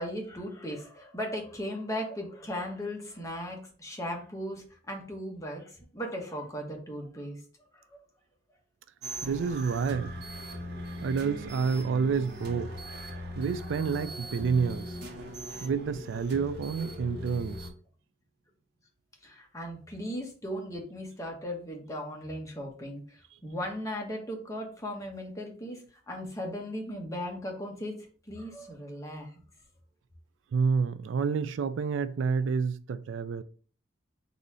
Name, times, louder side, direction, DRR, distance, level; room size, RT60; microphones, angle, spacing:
voice 1, 0.0-7.4 7.7-7.9 19.2-28.0 28.3-29.3, equal, 15° left, 1.1 m, -37 dB
sound 1, 9.0-17.7, equal, 60° right, 1.3 m, -40 dB
voice 2, 9.2-10.1 11.0-12.7 13.4-15.0 15.6-17.7 30.5-33.4, right 5 dB, 80° right, 0.4 m, -29 dB
4.0 x 2.8 x 4.7 m
head